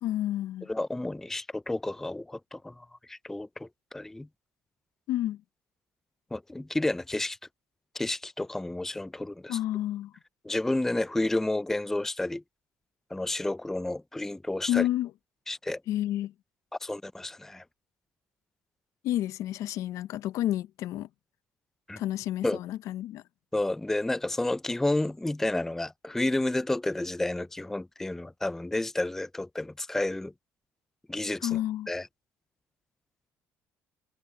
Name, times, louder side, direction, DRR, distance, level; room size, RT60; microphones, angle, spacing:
voice 1, 0.0-0.7 5.1-5.4 9.5-10.1 14.7-15.1 15.9-16.3 19.0-21.1 22.0-23.2 31.4-31.9, left 13 dB, 75° left, 0.7 m, -30 dB
voice 2, 0.7-4.3 6.3-7.4 7.9-9.6 10.4-12.4 13.1-14.9 15.5-15.8 16.8-17.6 21.9-22.0 22.4-22.6 23.5-30.3 31.1-31.6 31.9-32.1, left 2 dB, 5° left, 0.4 m, -31 dB
cardioid pair, 100°, 5 cm